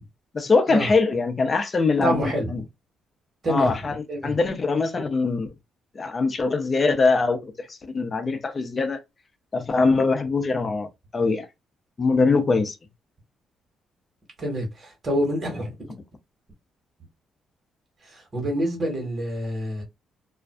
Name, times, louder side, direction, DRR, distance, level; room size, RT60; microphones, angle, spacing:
voice 1, 0.3-2.2 2.5-2.6 3.5-4.0 4.2-5.5 6.0-9.0 9.5-10.9 11.1-11.5 12.0-12.8, left 4 dB, 35° left, 0.6 m, -22 dB
voice 2, 2.0-2.6 3.4-3.8 4.1-4.4 14.4-15.9 18.0-19.8, equal, 40° right, 1.4 m, -27 dB
2.5 x 2.2 x 2.2 m
cardioid pair, 90°, 0 cm